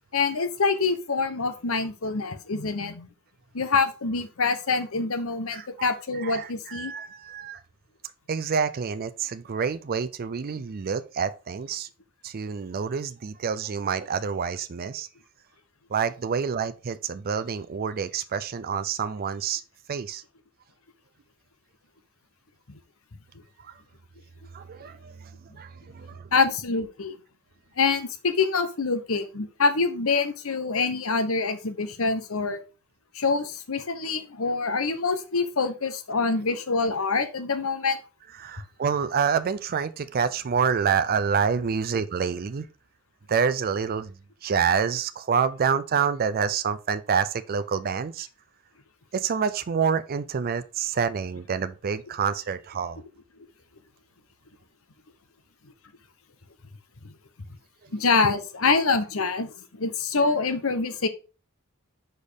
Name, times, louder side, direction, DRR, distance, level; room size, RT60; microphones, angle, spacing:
voice 1, 0.1-3.1 3.5-6.9 26.3-27.2 27.8-32.6 33.1-38.0 57.9-61.1, left 4 dB, 65° left, 0.9 m, -25 dB
voice 2, 5.5-7.6 8.3-11.9 12.2-15.1 15.9-19.6 19.9-20.2 23.6-23.8 24.5-26.3 38.4-42.6 43.3-44.1 44.4-48.3 49.1-53.0, right 6 dB, 45° right, 0.4 m, -27 dB
5.2 x 4.3 x 4.9 m
head